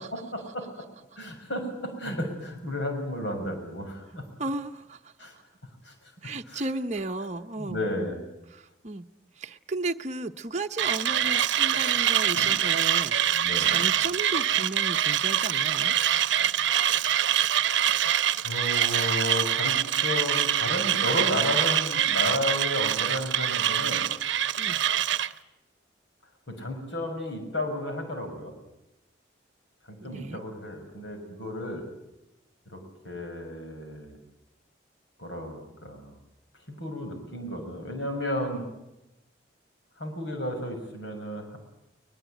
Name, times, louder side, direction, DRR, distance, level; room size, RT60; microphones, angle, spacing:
voice 1, 0.1-0.7 1.2-4.3 5.2-5.3 5.8-5.9 6.2-6.6 7.6-8.2 12.3-12.5 13.3-13.8 18.0-18.1 18.4-24.1 26.5-28.5 29.9-31.9 32.7-32.8 33.0-34.2 35.2-36.1 36.7-38.6 40.0-41.6, left 1 dB, 75° left, 4 dB, 6.2 m, -33 dB
voice 2, 4.4-5.0 6.2-7.9 8.5-9.1 9.4-15.9 24.6-24.8 30.0-30.4, right 2 dB, 35° right, 4 dB, 0.8 m, -34 dB
Mechanisms, 10.8-25.3, right 10 dB, 70° right, 0.8 m, -25 dB
21.5 x 21.0 x 9.1 m, 0.91 s
head